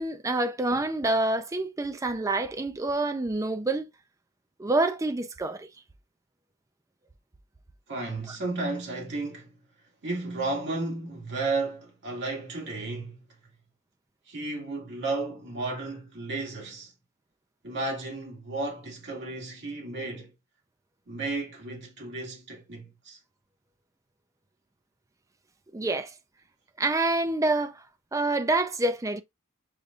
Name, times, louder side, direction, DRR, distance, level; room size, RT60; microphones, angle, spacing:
voice 1, 0.0-3.8 4.6-5.7 25.7-26.1 26.8-27.8 28.1-29.2, right 2 dB, 15° right, 0.4 m, -27 dB
voice 2, 7.9-9.5 10.0-13.2 14.3-16.9 17.6-20.3 21.1-23.2, right 3 dB, 60° right, 2.1 m, -33 dB
6.6 x 2.6 x 2.4 m
head